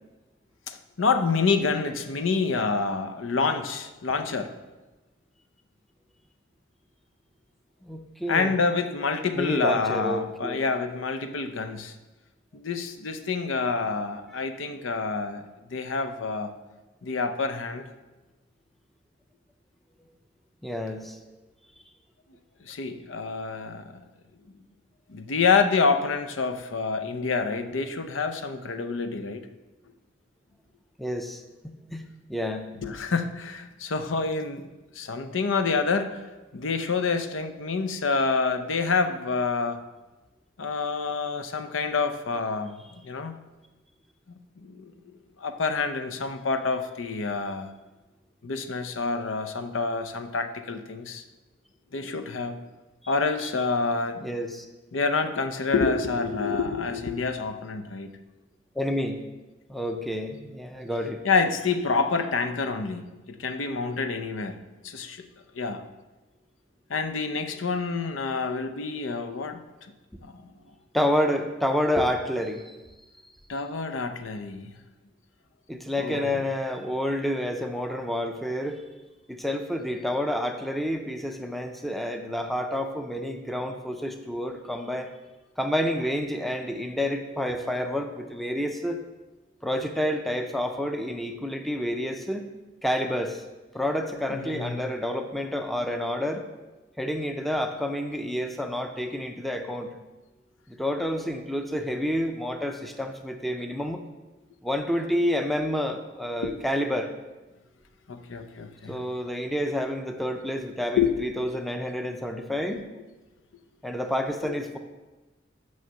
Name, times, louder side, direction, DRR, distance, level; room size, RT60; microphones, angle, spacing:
voice 1, 0.7-4.5 8.3-11.9 12.5-16.5 17.0-17.9 22.6-24.0 25.1-29.5 32.8-34.7 34.9-36.2 36.5-39.8 40.6-43.3 44.3-44.9 45.4-47.7 48.4-51.2 51.9-52.6 53.1-54.3 54.9-58.1 61.2-65.3 65.5-65.8 66.9-69.6 70.2-70.5 73.5-74.7 76.0-76.4 94.3-94.8 106.4-106.5 108.1-109.0 111.0-111.1 114.4-114.5, left 4 dB, 90° left, 9 dB, 0.7 m, -27 dB
voice 2, 7.8-8.5 9.4-10.6 14.3-14.4 20.6-21.2 31.0-32.7 54.2-54.7 58.8-59.2 59.7-61.2 70.9-72.8 75.7-78.8 79.3-85.1 85.6-89.0 89.6-92.5 92.8-93.4 93.7-96.5 97.0-100.0 100.7-104.0 104.6-107.1 108.9-112.9 113.8-114.8, equal, ahead, 5 dB, 0.5 m, -29 dB
6.3 x 5.5 x 7.0 m, 1.1 s
head